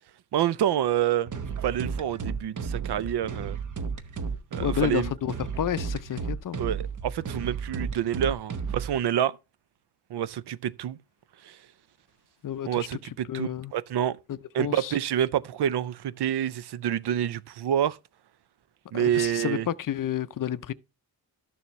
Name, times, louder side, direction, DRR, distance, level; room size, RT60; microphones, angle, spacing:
voice 1, 0.3-1.3 1.6-3.6 4.5-5.1 6.6-9.4 10.1-11.0 11.4-11.6 12.6-14.2 14.5-18.0 18.9-19.7, right 10 dB, 70° right, 0.5 m, -27 dB
sound 1, 1.3-9.0, right 5 dB, 45° right, 0.8 m, -33 dB
voice 2, 4.6-6.6 12.4-12.7 13.3-13.7 14.3-15.0 18.9-20.7, left 10 dB, 50° left, 0.5 m, -30 dB
12.0 x 7.0 x 3.1 m
wide cardioid pair, 145°, 41 cm